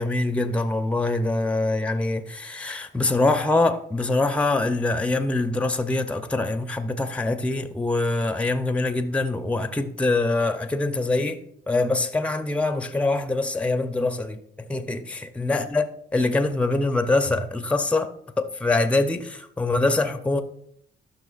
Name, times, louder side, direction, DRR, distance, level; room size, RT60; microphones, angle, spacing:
voice 1, 0.0-11.4 11.7-14.4 14.7-15.9 16.1-18.1 18.4-20.4, left 2 dB, 5° left, 0.6 m, -24 dB
12.5 x 5.8 x 2.5 m
cardioid pair, 90°, 20 cm